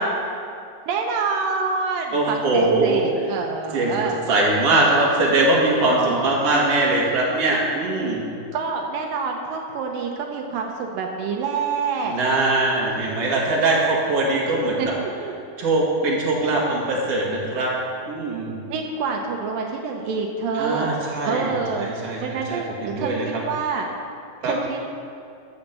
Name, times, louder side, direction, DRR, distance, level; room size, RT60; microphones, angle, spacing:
voice 1, 0.9-4.2 5.9-6.2 8.5-12.2 14.8-15.3 18.7-20.9 21.3-21.9 22.2-23.9 24.4-24.8, right 5 dB, 85° right, 2 dB, 2.6 m, -27 dB
voice 2, 2.1-3.0 3.7-8.2 12.0-14.8 15.6-17.7 18.1-18.5 20.5-23.2 24.4-24.5, right 2 dB, 50° right, -4 dB, 2.7 m, -21 dB
14.0 x 5.9 x 6.8 m, 2.4 s
omnidirectional pair, 3.9 m